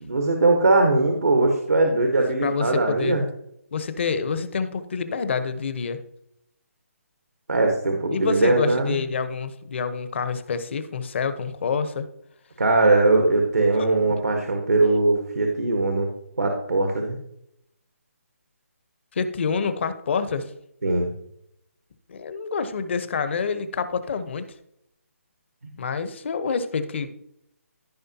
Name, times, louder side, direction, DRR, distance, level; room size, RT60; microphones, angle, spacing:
voice 1, 0.0-3.2 7.5-9.0 12.6-16.1 16.4-17.2 20.8-21.1, right 2 dB, 90° right, 2 dB, 1.5 m, -20 dB
voice 2, 2.4-3.2 3.7-6.0 8.1-12.0 13.8-13.9 19.1-20.5 22.1-24.5 25.8-27.1, left 5 dB, 50° left, 10 dB, 1.0 m, -27 dB
14.5 x 5.1 x 2.9 m, 0.75 s
hypercardioid pair, 155°, 8 cm